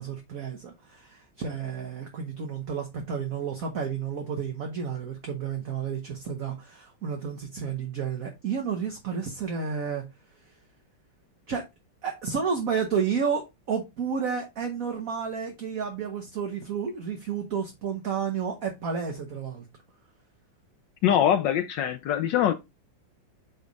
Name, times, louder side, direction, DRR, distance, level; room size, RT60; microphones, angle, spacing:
voice 1, 0.0-10.0 11.5-11.6 12.0-19.6, right 6 dB, 50° right, 1.4 m, -31 dB
voice 2, 21.0-22.5, left 10 dB, 70° left, 1.2 m, -23 dB
8.4 x 3.4 x 4.0 m
omnidirectional pair, 2.3 m